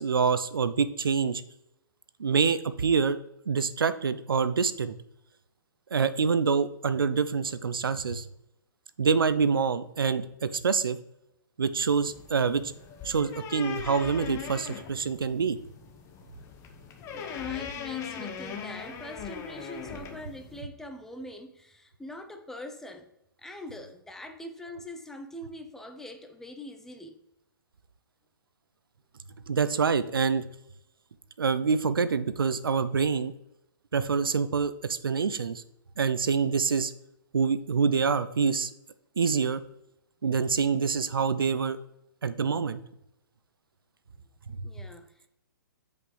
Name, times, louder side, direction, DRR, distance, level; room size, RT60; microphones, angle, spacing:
voice 1, 0.0-1.4 2.2-3.2 3.5-5.0 5.9-8.3 9.0-11.0 11.6-12.7 13.0-15.6 29.5-30.4 31.4-33.3 33.9-35.6 36.0-36.9 37.3-38.7 39.2-39.6 40.2-41.8 42.2-42.8, right 5 dB, 85° right, 14 dB, 0.6 m, -26 dB
sound 1, 11.9-20.6, left 7 dB, 25° left, 1.1 m, -40 dB
voice 2, 17.1-23.1 23.4-27.2 44.6-45.3, left 1 dB, 5° left, 5 dB, 0.7 m, -43 dB
8.2 x 5.2 x 3.3 m, 0.84 s
hypercardioid pair, 130°, 11 cm